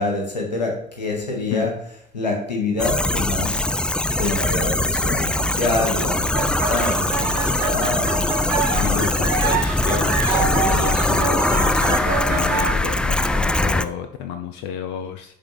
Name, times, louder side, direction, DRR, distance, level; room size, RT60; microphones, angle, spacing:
voice 1, 0.0-1.7 2.1-3.7 4.2-8.4, left 2 dB, 90° left, 2 dB, 1.1 m, -26 dB
sound 1, 2.8-13.8, left 2 dB, 5° left, 0.3 m, -21 dB
sound 2, 6.3-12.7, right 4 dB, 70° right, 1.1 m, -26 dB
voice 2, 8.7-15.4, left 9 dB, 60° left, 8 dB, 0.5 m, -31 dB
9.8 x 3.4 x 2.9 m, 0.74 s
figure-of-eight pair, 55°, 21 cm